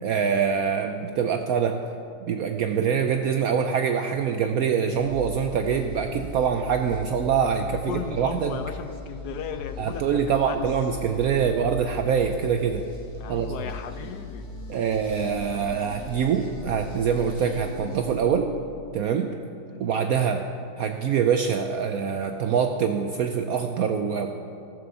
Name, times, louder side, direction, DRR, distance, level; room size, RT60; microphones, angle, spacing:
voice 1, 0.0-1.8 2.3-8.6 9.8-12.8 13.3-13.5 14.7-18.5 18.9-19.3 19.8-20.4 20.8-24.3, right 7 dB, 70° right, 5 dB, 0.9 m, -24 dB
sound 1, 4.9-18.2, left 2 dB, 45° left, 2.6 m, -39 dB
voice 2, 7.7-10.6 13.2-14.5 19.7-20.0, left 8 dB, 70° left, 9 dB, 1.1 m, -36 dB
14.5 x 6.8 x 6.8 m, 2.5 s
omnidirectional pair, 1.9 m